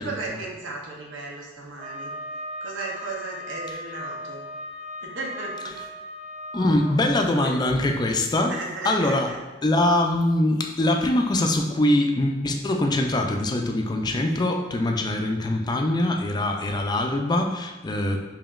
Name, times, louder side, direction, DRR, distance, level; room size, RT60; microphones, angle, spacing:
voice 1, 0.0-2.1 2.6-4.4 5.0-5.8 7.4-7.5 8.3-9.4, right 3 dB, 90° right, -1 dB, 0.8 m, -35 dB
Wind instrument woodwind instrument, 1.8-6.9, equal, 35° right, 0.5 m, -37 dB
voice 2, 6.5-8.5 8.8-9.3 9.6-18.2, left 1 dB, 20° left, 3 dB, 0.3 m, -23 dB
4.9 x 2.8 x 2.4 m, 1.2 s
head